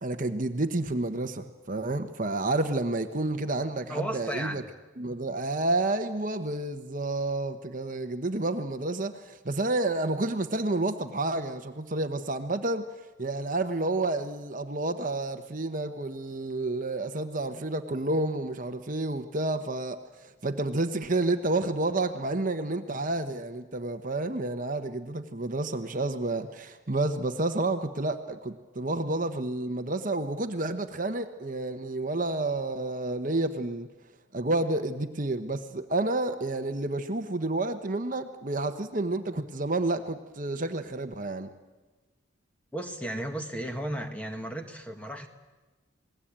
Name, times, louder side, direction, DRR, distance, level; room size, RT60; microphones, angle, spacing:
voice 1, 0.0-4.6 5.0-12.9 13.2-33.9 34.3-41.5, right 2 dB, 40° right, 7 dB, 1.1 m, -30 dB
voice 2, 3.9-4.6 42.7-45.3, right 1 dB, 5° left, 5 dB, 1.7 m, -34 dB
28.0 x 19.5 x 8.9 m, 1.2 s
head